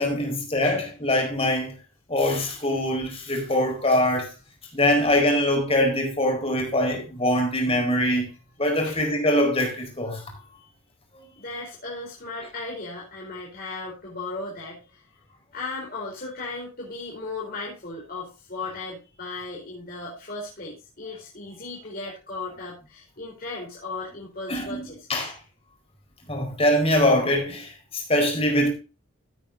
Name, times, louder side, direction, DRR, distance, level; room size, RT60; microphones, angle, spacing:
voice 1, 0.0-1.7 2.1-4.3 4.7-8.3 8.6-10.2 24.5-24.8 25.1-25.3 26.3-28.7, left 1 dB, 25° left, 4.3 m, -23 dB
voice 2, 11.3-15.0 15.5-25.4, left 3 dB, 45° left, 4.6 m, -36 dB
16.0 x 8.9 x 2.6 m
head